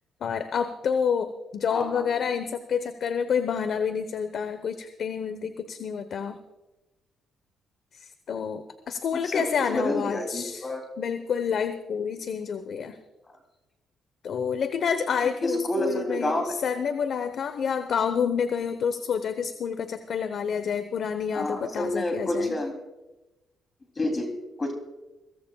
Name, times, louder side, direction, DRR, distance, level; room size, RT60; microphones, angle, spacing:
voice 1, 0.2-6.4 7.9-13.0 14.2-22.6, left 7 dB, 60° left, 10 dB, 0.9 m, -28 dB
voice 2, 1.7-2.0 9.1-9.4 9.7-10.8 15.4-16.4 21.3-22.7 24.0-24.3 24.6-24.7, left 1 dB, 30° left, 4 dB, 2.9 m, -28 dB
22.5 x 17.0 x 2.3 m, 1.0 s
cardioid pair, 90°, 0 cm